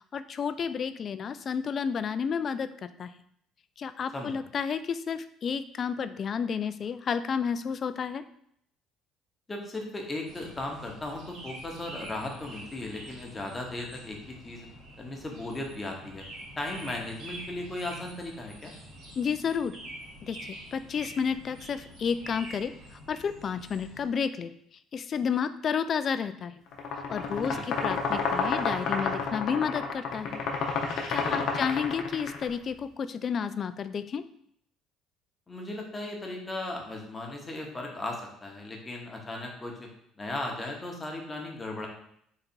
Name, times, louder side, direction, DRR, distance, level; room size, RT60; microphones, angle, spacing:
voice 1, 0.1-3.1 3.8-8.2 19.2-19.8 20.2-22.7 23.1-24.5 24.9-26.5 27.1-30.4 31.1-34.2, left 6 dB, 45° left, 12 dB, 0.3 m, -31 dB
voice 2, 9.5-14.7 15.0-16.2 16.6-18.7 27.4-27.7 31.2-31.6 35.5-39.9 40.2-41.9, left 2 dB, 25° left, 1 dB, 1.1 m, -37 dB
sound 1, 10.3-24.1, right 1 dB, 60° right, 1.8 m, -46 dB
sound 2, 26.7-32.5, left 5 dB, 65° left, 0.8 m, -30 dB
3.9 x 2.5 x 4.4 m, 0.69 s
supercardioid pair, 80°, 0 cm